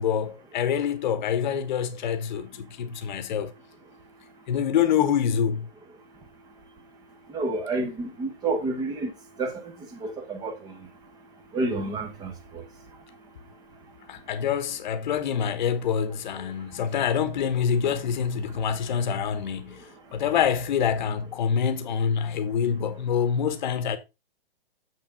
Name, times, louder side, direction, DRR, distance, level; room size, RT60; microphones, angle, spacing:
voice 1, 0.0-3.5 4.5-5.7 14.1-19.8 20.1-24.0, left 8 dB, 50° left, 1.1 m, -26 dB
voice 2, 7.3-9.1 9.4-9.6 10.0-10.7 11.5-12.3, right 2 dB, 15° right, 1.1 m, -29 dB
7.2 x 6.2 x 3.6 m
hypercardioid pair, 150°, 30 cm